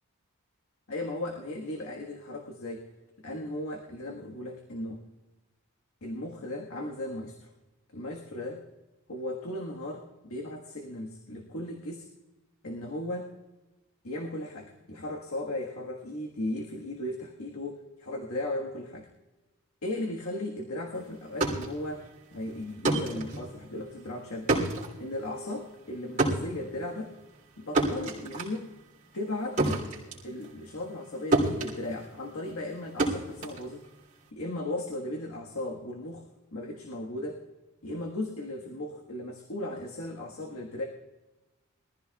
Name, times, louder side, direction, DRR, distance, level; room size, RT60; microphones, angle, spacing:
voice 1, 0.9-2.9 3.2-5.0 6.0-7.5 7.9-8.6 9.1-12.1 12.6-13.3 14.0-19.0 19.8-24.5 25.0-27.1 27.6-28.7 29.1-29.6 30.2-33.8 34.3-37.4 37.8-40.8, left 1 dB, 75° left, 0 dB, 1.5 m, -36 dB
sound 1, 21.2-31.1 31.3-34.3, right 2 dB, 35° right, 3.1 m, -30 dB
22.0 x 14.5 x 2.3 m, 1.1 s
head